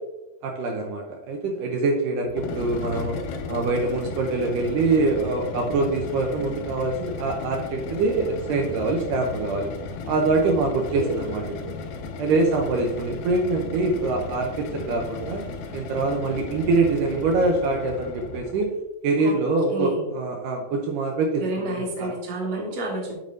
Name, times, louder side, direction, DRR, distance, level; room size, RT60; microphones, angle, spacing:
voice 1, 0.4-3.2 3.5-9.7 10.1-11.8 12.2-15.4 15.7-18.7 19.0-22.1, right 3 dB, 85° right, 1 dB, 1.9 m, -24 dB
sound 1, 2.3-18.7, left 4 dB, 90° left, 2.9 m, -35 dB
voice 2, 10.4-10.7 11.0-11.2 19.2-19.4 19.7-20.1 21.4-23.1, right 1 dB, 55° right, -1 dB, 1.6 m, -29 dB
8.7 x 5.4 x 2.6 m, 0.99 s
omnidirectional pair, 4.6 m